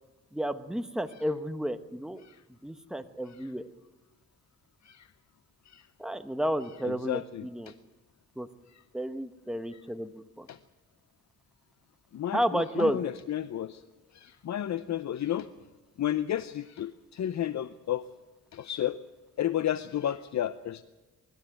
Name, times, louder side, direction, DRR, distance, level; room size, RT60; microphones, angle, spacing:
voice 1, 0.3-2.2 2.6-3.6 6.0-7.7 8.4-8.5 8.9-10.1 10.4-10.5 12.3-13.0, equal, ahead, 9 dB, 1.1 m, -31 dB
voice 2, 6.8-7.7 8.7-8.8 9.7-9.8 10.5-10.6 12.1-13.8 14.1-15.5 16.0-18.0 18.5-19.0 19.4-20.8, left 11 dB, 65° left, 14 dB, 0.7 m, -32 dB
24.5 x 12.5 x 9.2 m, 1.2 s
cardioid pair, 85°, 31 cm